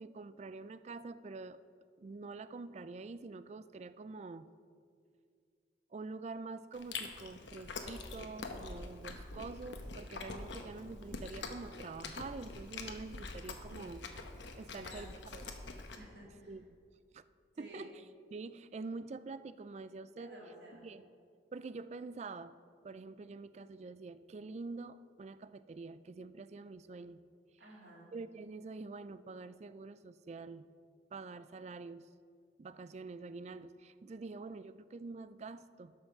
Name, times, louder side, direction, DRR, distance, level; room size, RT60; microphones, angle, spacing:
voice 1, 0.0-1.6 2.0-4.5 5.9-14.0 14.6-15.4 16.5-16.6 17.1-17.2 17.6-18.0 18.3-20.3 20.8-21.0 21.5-22.6 22.8-27.2 28.1-30.7 31.1-32.1 32.6-35.9, right 3 dB, 35° right, 14 dB, 0.3 m, -46 dB
Chewing mastication, 6.7-16.0, left 3 dB, 75° left, 1.0 m, -45 dB
voice 2, 14.7-15.1 16.0-16.5 17.5-17.9 20.2-20.9 27.6-28.1, equal, 65° right, -3 dB, 2.8 m, -53 dB
11.5 x 5.7 x 6.6 m, 2.2 s
head